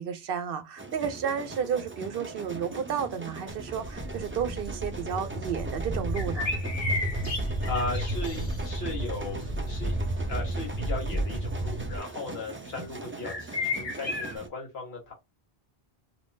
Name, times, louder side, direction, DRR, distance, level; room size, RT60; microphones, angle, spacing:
voice 1, 0.0-6.5, right 8 dB, 65° right, 0.7 m, -32 dB
sound 1, 0.8-14.5, right 2 dB, 20° right, 0.4 m, -41 dB
sound 2, 3.5-12.0, right 1 dB, 5° left, 1.4 m, -32 dB
sound 3, 6.2-8.6 13.2-14.4, left 3 dB, 40° left, 0.8 m, -33 dB
voice 2, 7.7-9.9 10.3-15.1, left 2 dB, 75° left, 1.7 m, -36 dB
3.5 x 3.0 x 2.6 m
omnidirectional pair, 1.1 m